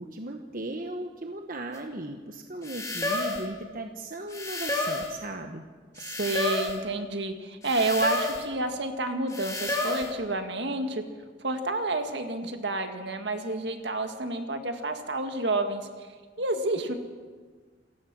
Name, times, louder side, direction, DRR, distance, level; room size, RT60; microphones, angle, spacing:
voice 1, 0.0-5.6, right 1 dB, 50° right, 4 dB, 1.2 m, -37 dB
sound 1, 1.7-1.8 2.6-3.5 4.3-5.1 6.0-6.8 7.6-8.5 9.3-10.1, left 2 dB, 15° left, 2.5 m, -30 dB
voice 2, 6.0-11.0 11.4-15.9 16.4-16.9, right 2 dB, 70° right, 6 dB, 2.0 m, -29 dB
28.0 x 15.0 x 6.3 m, 1.5 s
head